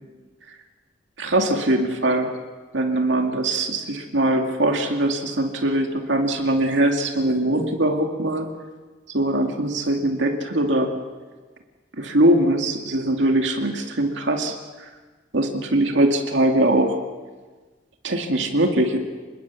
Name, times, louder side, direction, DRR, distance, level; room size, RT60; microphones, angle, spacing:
voice 1, 1.2-2.3 2.7-8.5 9.1-10.9 12.0-14.6 15.3-17.0 18.0-19.0, right 1 dB, 75° right, 3 dB, 2.3 m, -21 dB
26.5 x 20.5 x 8.4 m, 1.4 s
head